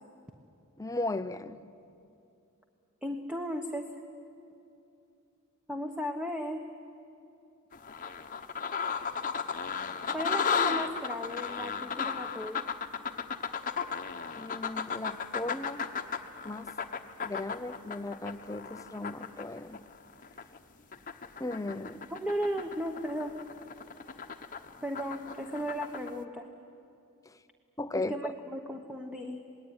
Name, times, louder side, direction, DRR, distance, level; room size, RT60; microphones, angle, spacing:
voice 1, 0.8-1.6 14.4-15.8 16.4-16.7 17.2-19.8 21.4-22.0 27.3-27.4 27.8-28.3, left 2 dB, 15° left, 0.7 m, -36 dB
voice 2, 3.0-3.9 5.7-6.6 10.1-12.6 22.1-23.3 24.8-26.5 27.9-29.4, equal, 5° right, 1.2 m, -35 dB
sound 1, 7.7-20.6 20.9-26.1, left 6 dB, 40° left, 1.1 m, -35 dB
27.5 x 20.0 x 9.8 m
head